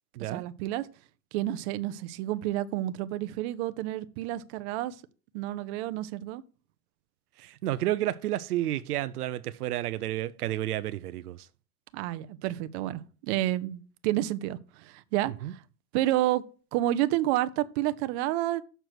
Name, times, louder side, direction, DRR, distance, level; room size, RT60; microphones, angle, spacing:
voice 1, 0.2-0.9 1.3-4.9 5.3-6.4 11.9-15.6 15.9-16.4 16.7-18.6, right 14 dB, 45° right, 0.7 m, -30 dB
voice 2, 7.4-11.5 15.4-15.5, right 14 dB, 90° right, 0.6 m, -31 dB
6.7 x 4.5 x 6.0 m
hypercardioid pair, 125°, 44 cm